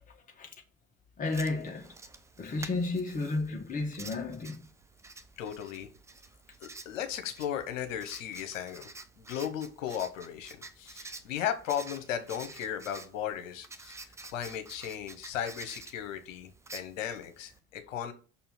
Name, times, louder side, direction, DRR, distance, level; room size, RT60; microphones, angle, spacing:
voice 1, 0.1-0.5 1.2-1.9 2.4-4.6, left 3 dB, 20° left, 1.4 m, -33 dB
Writing, 1.3-17.6, right 3 dB, 5° right, 0.5 m, -50 dB
voice 2, 5.4-5.9 6.6-8.9 9.2-14.0 14.2-18.1, left 9 dB, 60° left, 1.2 m, -36 dB
5.9 x 4.3 x 5.8 m
figure-of-eight pair, 70°, 42 cm